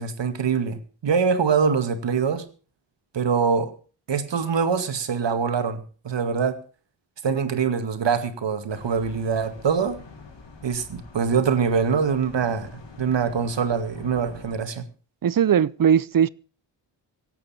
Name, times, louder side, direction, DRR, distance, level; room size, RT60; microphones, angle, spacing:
voice 1, 0.0-2.5 3.1-3.7 4.1-6.6 7.2-10.0 10.6-12.7 13.0-14.8, right 6 dB, 70° right, 2.1 m, -24 dB
sound 1, 8.7-14.6, left 4 dB, 70° left, 4.7 m, -45 dB
voice 2, 15.2-16.3, right 8 dB, 50° right, 0.7 m, -19 dB
25.0 x 8.5 x 4.3 m
wide cardioid pair, 100°, 45 cm